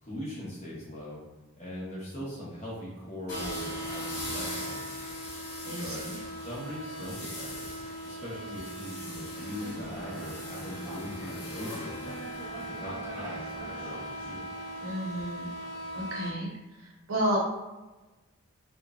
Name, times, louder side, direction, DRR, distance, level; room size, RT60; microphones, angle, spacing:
voice 1, 0.0-1.2 1.6-5.0 5.8-6.0 6.4-7.7 8.0-12.2 12.7-14.5, equal, 30° left, -7 dB, 0.9 m, -40 dB
sound 1, 3.3-16.3, equal, 85° left, 0.9 m, -39 dB
voice 2, 5.6-6.2 14.8-15.5 15.9-16.5 16.8-17.4, equal, 60° right, -3 dB, 0.6 m, -31 dB
sound 2, 9.3-14.4, right 1 dB, 10° right, 0.3 m, -44 dB
Wind instrument woodwind instrument, 10.4-14.9, left 2 dB, 65° left, 1.1 m, -48 dB
2.9 x 2.1 x 2.4 m, 1.1 s
head